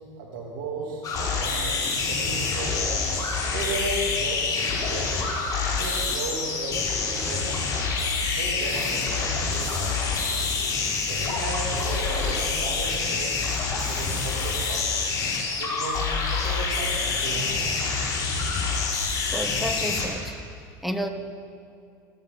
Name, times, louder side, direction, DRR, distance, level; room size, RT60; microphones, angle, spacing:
voice 1, 0.2-1.8 2.1-3.1 3.5-5.2 5.7-7.8 8.3-10.5 11.1-13.4 13.7-15.2 15.6-17.8, right 3 dB, 85° right, -1 dB, 2.8 m, -35 dB
sound 1, 1.0-20.1, left 4 dB, 35° left, 4.5 m, -27 dB
voice 2, 19.3-20.3 20.8-21.1, equal, ahead, 6 dB, 1.2 m, -30 dB
16.5 x 14.0 x 5.4 m, 2.4 s
supercardioid pair, 115°, 10 cm